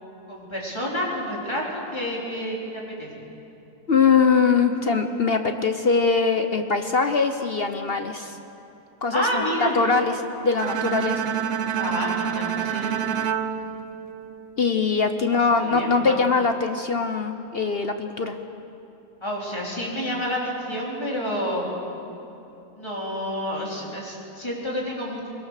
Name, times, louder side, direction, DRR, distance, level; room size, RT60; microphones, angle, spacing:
voice 1, 0.3-3.2 9.1-9.8 11.7-13.0 15.3-16.3 19.2-21.7 22.7-25.3, equal, 20° left, -4 dB, 4.2 m, -29 dB
voice 2, 3.9-8.4 9.0-10.1 10.4-11.2 14.6-18.3, left 5 dB, 45° left, 7 dB, 1.0 m, -22 dB
Bowed string instrument, 10.6-14.7, right 8 dB, 55° right, 1.1 m, -28 dB
22.5 x 21.5 x 6.6 m, 2.9 s
omnidirectional pair, 1.5 m